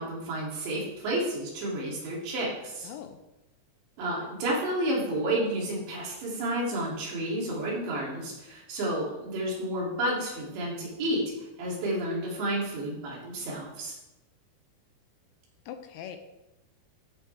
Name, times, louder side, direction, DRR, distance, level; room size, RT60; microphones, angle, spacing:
voice 1, 0.0-2.9 4.0-11.2 11.6-14.0, right 1 dB, 70° right, -4 dB, 4.9 m, -31 dB
voice 2, 2.8-3.2 15.7-16.2, left 9 dB, 80° left, 7 dB, 2.9 m, -41 dB
13.5 x 9.2 x 3.4 m, 0.96 s
omnidirectional pair, 5.4 m